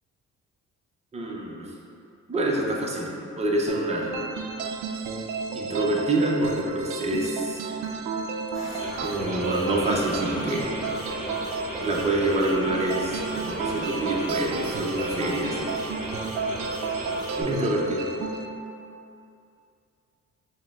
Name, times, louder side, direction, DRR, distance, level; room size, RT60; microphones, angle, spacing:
voice 1, 1.1-1.7 2.3-3.1 3.4-4.1 5.5-7.7 9.0-10.7 11.8-15.7 17.4-18.0, right 1 dB, 20° right, -2 dB, 0.6 m, -26 dB
sound 1, 3.7-18.5, right 4 dB, 75° right, 0.4 m, -32 dB
sound 2, 8.5-17.4, right 1 dB, ahead, 1.3 m, -36 dB
4.9 x 2.1 x 3.5 m, 2.6 s
cardioid pair, 90°, 30 cm